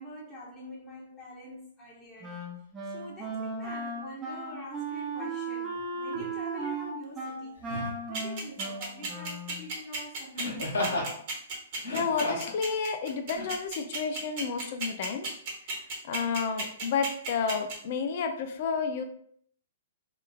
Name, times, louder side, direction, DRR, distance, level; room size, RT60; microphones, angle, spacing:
voice 1, 0.0-2.4 2.8-11.2, equal, 10° left, -6 dB, 1.0 m, -46 dB
Wind instrument woodwind instrument, 2.2-9.7, right 3 dB, 15° right, 0.5 m, -36 dB
Laughter, 6.1-6.3 7.6-8.0 10.4-11.1 11.8-12.6 13.3-13.5, left 2 dB, 85° left, 1.3 m, -32 dB
sound 1, 8.1-17.7, right 4 dB, 45° right, 1.0 m, -34 dB
voice 2, 10.7-11.1 11.9-15.3 15.7-19.0, left 5 dB, 50° left, 6 dB, 0.4 m, -31 dB
2.9 x 2.3 x 2.2 m, 0.63 s
hypercardioid pair, 145°, 0 cm